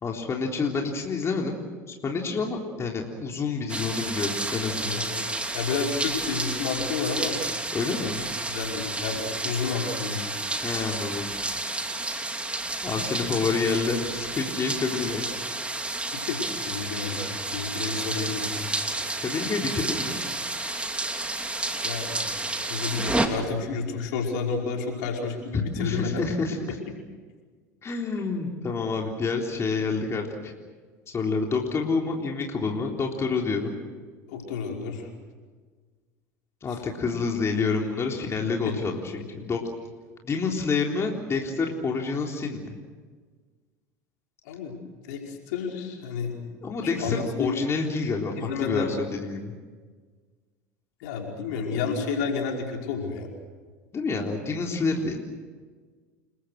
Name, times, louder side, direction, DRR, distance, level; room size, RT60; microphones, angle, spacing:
voice 1, 0.0-1.6 1.9-5.0 7.7-8.3 10.6-11.3 12.8-15.3 19.2-20.2 25.5-26.6 27.8-30.5 31.1-33.8 36.6-39.6 40.2-42.7 46.6-49.5 53.9-55.2, left 4 dB, 30° left, 0 dB, 3.7 m, -28 dB
sound 1, 3.7-23.3, right 2 dB, 15° right, 3.1 m, -31 dB
voice 2, 4.8-7.4 7.8-8.1 8.5-10.5 16.3-16.4 16.7-18.6 21.8-22.2 22.7-26.2 34.3-35.1 36.7-36.8 38.6-38.8 39.2-39.3 44.5-44.8 45.0-46.5 46.8-47.5 48.4-49.0 51.0-53.3, left 5 dB, 70° left, 0 dB, 5.3 m, -31 dB
29.5 x 21.5 x 6.6 m, 1.5 s
hypercardioid pair, 75°, 9 cm